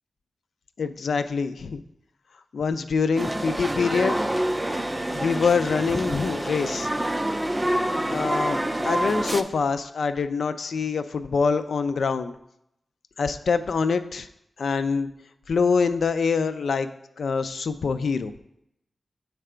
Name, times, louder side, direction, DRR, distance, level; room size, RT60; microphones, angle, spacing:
voice 1, 0.8-1.8 2.5-4.2 5.1-6.9 8.1-12.4 13.2-14.3 14.6-15.1 15.5-16.9 17.2-18.3, left 5 dB, 90° left, 10 dB, 0.3 m, -25 dB
sound 1, 3.2-9.4, right 1 dB, 10° right, 0.3 m, -27 dB
6.6 x 3.3 x 4.9 m, 0.80 s
wide cardioid pair, 125°, 0 cm